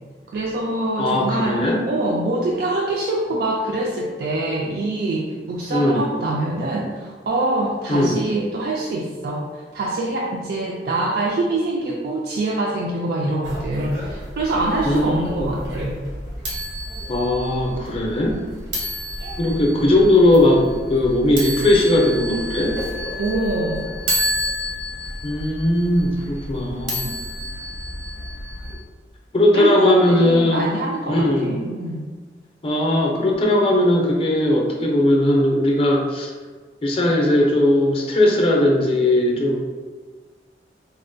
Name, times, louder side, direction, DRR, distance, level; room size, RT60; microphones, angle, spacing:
voice 1, 0.3-1.6 1.9-16.0 23.2-23.9 29.5-32.0, right 2 dB, 60° right, -2 dB, 0.3 m, -24 dB
voice 2, 1.0-1.8 5.7-6.0 7.9-8.2 14.8-15.5 17.1-18.4 19.4-20.6 20.9-22.7 25.2-27.1 29.3-30.6 31.1-31.6 32.6-36.3 36.8-39.6, left 1 dB, 35° left, -1 dB, 0.5 m, -18 dB
sound 1, 13.4-28.7, equal, 80° right, 0.9 m, -30 dB
4.1 x 2.1 x 2.6 m, 1.4 s
head